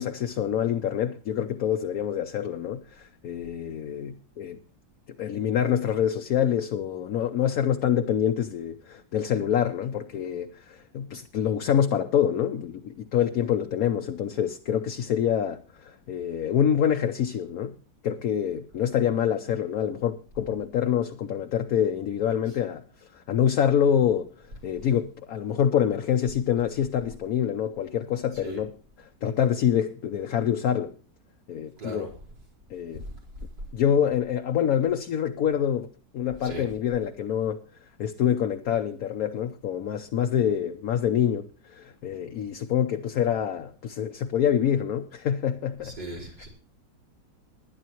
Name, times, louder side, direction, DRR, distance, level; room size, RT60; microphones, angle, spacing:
voice 1, 0.0-4.6 5.2-17.7 18.0-22.8 23.1-24.3 24.6-28.7 29.2-30.9 31.5-32.1 32.7-33.0 33.7-35.9 36.1-37.6 38.0-46.2, left 9 dB, 60° left, 1.1 m, -26 dB
voice 2, 31.8-32.1 33.0-33.1 36.4-36.7 45.8-46.5, right 1 dB, 85° right, 5.3 m, -37 dB
20.5 x 10.0 x 3.0 m
omnidirectional pair, 1.9 m